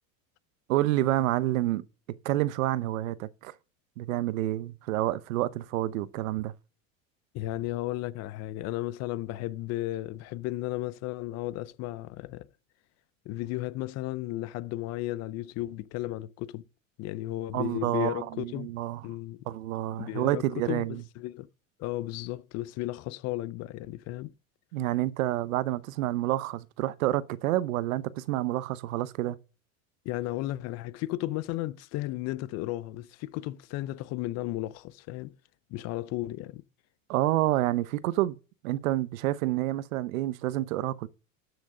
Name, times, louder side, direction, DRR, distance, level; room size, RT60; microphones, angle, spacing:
voice 1, 0.7-1.8 2.2-3.5 4.0-6.5 17.5-19.0 19.5-21.0 24.7-29.4 37.1-38.4 38.6-41.1, right 15 dB, 90° right, 0.9 m, -28 dB
voice 2, 7.3-12.5 13.3-16.6 17.0-18.7 19.0-19.4 20.0-21.5 21.8-24.3 30.0-35.3 35.7-36.6, left 16 dB, 40° left, 0.6 m, -34 dB
13.0 x 6.3 x 4.9 m
supercardioid pair, 140°, 39 cm